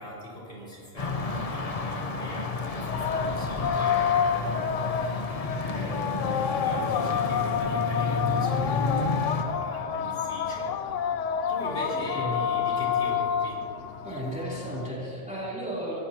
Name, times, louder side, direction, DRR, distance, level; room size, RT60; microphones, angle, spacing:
voice 1, 0.0-5.1 5.7-11.1 11.5-13.6, equal, 50° left, -7 dB, 4.5 m, -41 dB
sound 1, 1.0-9.4, left 3 dB, 35° left, 0.8 m, -31 dB
Muezzin in Al Ain United Arab Emirates with birds, 2.8-14.9, left 7 dB, 80° left, 1.0 m, -29 dB
sound 2, 4.8-7.9, right 2 dB, 40° right, 2.2 m, -50 dB
voice 2, 14.0-16.0, equal, 5° right, -7 dB, 3.5 m, -33 dB
24.5 x 15.5 x 3.0 m, 2.8 s
omnidirectional pair, 1.3 m